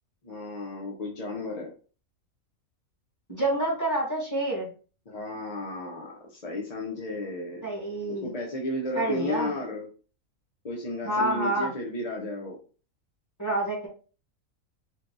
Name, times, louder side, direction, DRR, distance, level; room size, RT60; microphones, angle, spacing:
voice 1, 0.2-1.7 5.1-7.7 8.1-9.9 10.6-12.6, left 1 dB, 35° left, -1 dB, 0.6 m, -33 dB
voice 2, 3.3-4.7 7.6-8.3 8.9-9.5 11.0-11.7 13.4-13.9, right 1 dB, 15° left, -3 dB, 1.4 m, -28 dB
4.6 x 2.3 x 3.9 m, 0.38 s
omnidirectional pair, 1.5 m